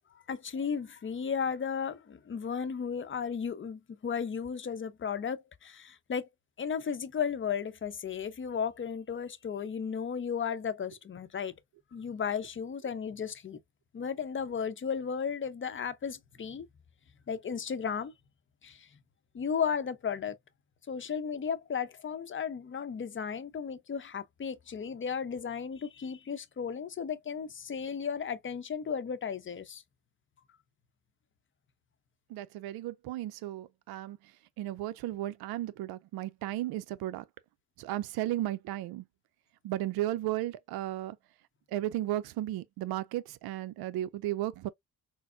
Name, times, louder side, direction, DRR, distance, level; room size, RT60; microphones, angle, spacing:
voice 1, 0.3-6.3 6.6-11.5 11.9-13.6 13.9-16.7 17.3-18.1 18.6-18.9 19.3-20.4 20.9-29.8, left 6 dB, 30° left, 0.7 m, -34 dB
voice 2, 32.3-34.2 34.6-37.2 37.8-39.0 39.6-41.2 41.7-44.7, right 14 dB, 70° right, 0.5 m, -34 dB
4.0 x 2.0 x 2.5 m
supercardioid pair, 55°, 39 cm